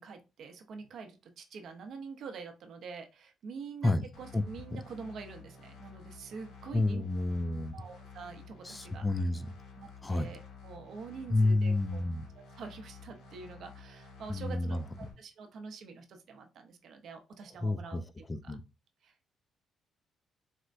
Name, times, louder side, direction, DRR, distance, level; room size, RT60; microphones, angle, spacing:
voice 1, 0.0-3.9 4.2-7.0 7.7-9.3 9.8-12.0 12.3-18.0 18.4-18.6 19.0-19.3, right 5 dB, 65° right, 0.6 m, -46 dB
sound 1, 4.1-15.1, left 5 dB, 80° left, 1.4 m, -52 dB
voice 2, 6.7-7.7 8.6-9.5 10.0-10.3 11.3-12.2 14.3-14.8 17.6-18.0 18.3-18.6, left 2 dB, 20° left, 0.3 m, -29 dB
4.2 x 2.1 x 2.5 m
cardioid pair, 90°, 0 cm